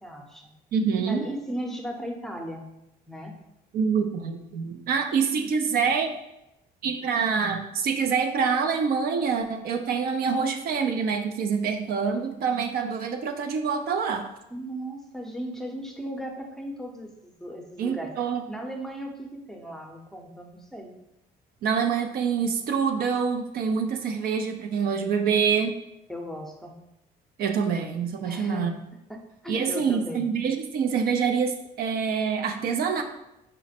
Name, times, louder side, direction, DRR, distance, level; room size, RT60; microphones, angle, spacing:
voice 1, 0.0-0.5 1.1-2.6 3.1-3.3 14.5-18.1 18.5-20.9 26.1-26.8 28.2-28.7 29.1-29.2 29.4-30.3, equal, ahead, 2 dB, 0.6 m, -36 dB
voice 2, 0.7-1.3 3.7-6.1 6.8-14.2 17.8-18.4 21.6-25.7 27.4-28.7 29.5-33.0, right 6 dB, 60° right, 5 dB, 0.5 m, -26 dB
5.0 x 2.1 x 4.2 m, 0.87 s
cardioid pair, 110°, 17 cm